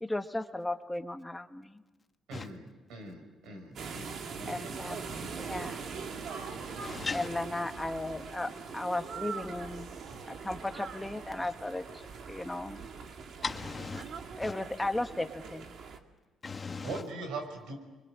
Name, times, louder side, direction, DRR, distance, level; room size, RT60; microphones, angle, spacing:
voice 1, 0.0-1.8 4.4-5.1 5.4-5.8 7.1-9.9 10.3-11.8 12.3-12.8 14.4-15.6, left 2 dB, 10° left, 1.2 m, -35 dB
voice 2, 2.3-4.9 16.8-17.8, right 3 dB, 90° right, 5.7 m, -43 dB
sound 1, 3.8-16.0, right 5 dB, 65° right, 2.4 m, -42 dB
voice 3, 6.8-7.3 13.4-14.1 14.4-14.5 16.4-17.0, left 4 dB, 30° left, 1.6 m, -37 dB
28.5 x 24.0 x 7.5 m
cardioid pair, 90°, 0 cm